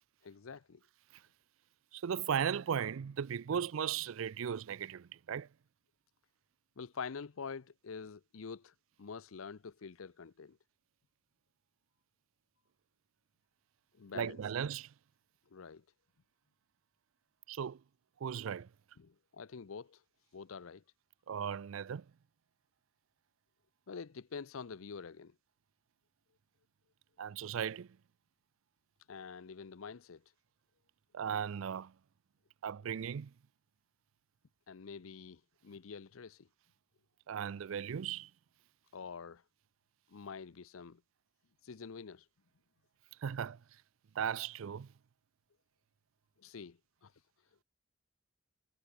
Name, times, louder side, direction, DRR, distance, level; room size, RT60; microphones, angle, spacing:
voice 1, 0.2-0.8 6.8-10.6 13.9-14.4 15.5-15.8 19.0-20.0 20.3-20.8 23.9-25.3 29.1-30.2 34.7-36.5 38.9-39.4 40.1-41.0 41.6-42.3 46.4-47.1, left 5 dB, 90° left, 0.6 m, -46 dB
voice 2, 1.9-5.5 14.1-14.9 17.5-17.8 18.2-18.7 21.3-22.0 27.2-27.9 31.1-31.9 32.6-33.3 37.3-38.3 43.2-43.6 44.1-44.9, right 8 dB, 80° right, 0.4 m, -37 dB
head